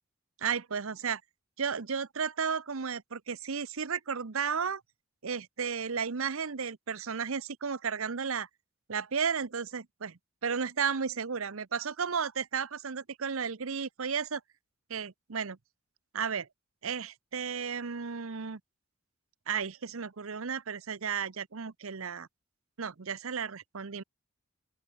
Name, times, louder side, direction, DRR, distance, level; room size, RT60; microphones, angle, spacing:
voice 1, 0.4-1.2 1.6-4.8 5.2-8.5 8.9-14.4 14.9-15.6 16.1-16.5 16.8-18.6 19.5-22.3 22.8-24.0, right 6 dB, 75° right, 0.8 m, -33 dB
open air
head